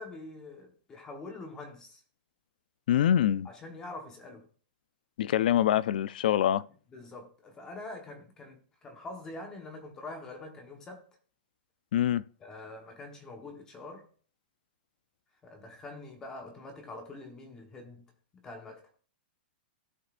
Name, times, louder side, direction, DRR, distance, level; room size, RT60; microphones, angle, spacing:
voice 1, 0.0-2.0 3.4-4.5 6.9-11.1 12.4-14.1 15.4-18.1 18.4-18.8, left 2 dB, 10° left, 1.2 m, -45 dB
voice 2, 2.9-3.5 5.2-6.6 11.9-12.2, left 11 dB, 60° left, 0.4 m, -25 dB
16.0 x 5.5 x 2.5 m
supercardioid pair, 175°, 5 cm